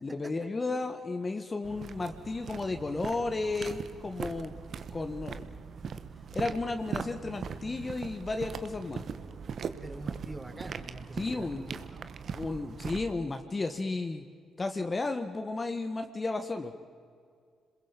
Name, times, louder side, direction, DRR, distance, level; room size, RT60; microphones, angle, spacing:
voice 1, 0.0-4.6 4.9-5.5 6.3-9.0 11.2-11.8 12.3-14.2 14.6-16.7, left 3 dB, 30° left, 6 dB, 1.6 m, -33 dB
sound 1, 1.6-13.1, right 6 dB, 60° right, 1.2 m, -40 dB
voice 2, 9.8-11.5 11.9-12.1, right 2 dB, 20° right, 3 dB, 4.3 m, -44 dB
27.0 x 21.5 x 7.4 m, 2.2 s
cardioid pair, 75°, 0 cm